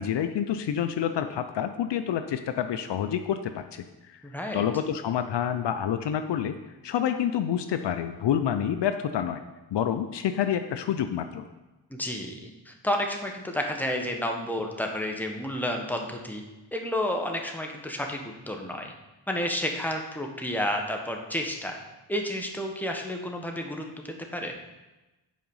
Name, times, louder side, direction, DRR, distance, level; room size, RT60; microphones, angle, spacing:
voice 1, 0.0-4.2 4.5-6.6 6.8-9.4 9.7-11.4, left 9 dB, 65° left, 8 dB, 0.6 m, -28 dB
voice 2, 4.2-4.6 11.9-16.4 16.7-18.2 18.5-18.9 19.3-21.8 22.1-23.8 24.3-24.5, left 1 dB, 5° left, 2 dB, 1.4 m, -31 dB
7.5 x 5.0 x 5.5 m, 1.1 s
cardioid pair, 55°, 45 cm